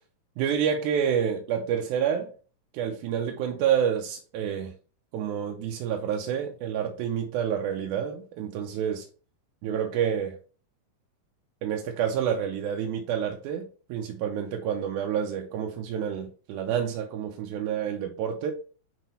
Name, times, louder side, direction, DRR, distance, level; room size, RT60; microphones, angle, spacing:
voice 1, 0.4-2.3 2.7-4.7 5.1-9.1 9.6-10.4 11.6-18.5, right 8 dB, 80° right, 2.0 m, -28 dB
7.4 x 3.2 x 4.1 m
omnidirectional pair, 3.7 m